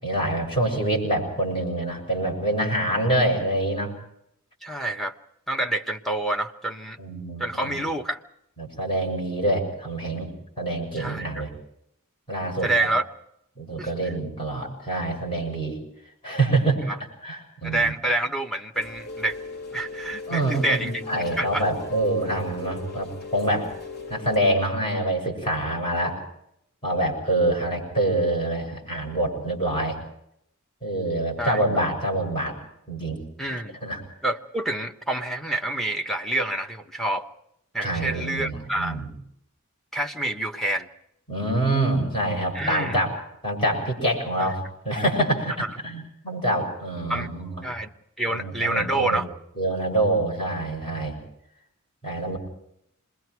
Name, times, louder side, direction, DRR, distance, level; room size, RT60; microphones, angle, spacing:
voice 1, 0.0-3.9 7.0-7.8 8.6-10.3 10.6-11.5 12.3-12.9 13.6-15.8 16.2-17.9 20.3-23.7 24.1-26.2 26.8-30.0 30.8-32.6 32.9-33.2 33.8-34.0 37.8-39.1 41.3-43.1 43.4-47.6 48.3-49.2 49.6-51.2 52.0-52.4, right 1 dB, 25° left, 0 dB, 6.8 m, -26 dB
voice 2, 4.6-5.2 5.5-7.0 7.4-8.2 10.9-11.4 12.6-13.0 13.8-13.9 16.9-17.0 17.6-19.4 19.7-21.0 21.4-21.7 31.4-31.6 33.4-33.8 34.2-37.3 37.7-39.0 39.9-40.9 42.5-43.0 44.4-44.5 45.6-45.7 47.1-47.3 47.6-49.3, right 2 dB, ahead, 4 dB, 1.2 m, -27 dB
Rain, 18.7-24.4, left 3 dB, 50° left, 3.0 m, -38 dB
27.0 x 22.0 x 4.7 m, 0.76 s
head